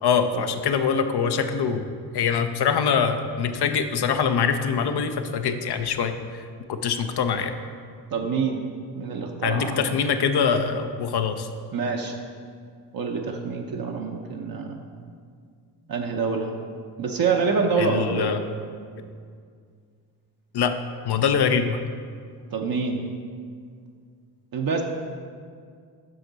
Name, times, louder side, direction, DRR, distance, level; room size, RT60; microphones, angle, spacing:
voice 1, 0.0-1.9 2.1-6.4 6.7-7.5 9.4-11.5 17.8-18.4 20.5-20.8 21.1-21.8, left 6 dB, 60° left, 8 dB, 0.7 m, -24 dB
voice 2, 8.1-8.7 8.9-9.9 11.7-12.2 12.9-14.8 15.9-16.6 17.0-18.4 22.5-23.0 24.5-24.8, right 5 dB, 50° right, 1 dB, 0.8 m, -26 dB
7.8 x 5.9 x 4.0 m, 2.1 s
supercardioid pair, 50°, 45 cm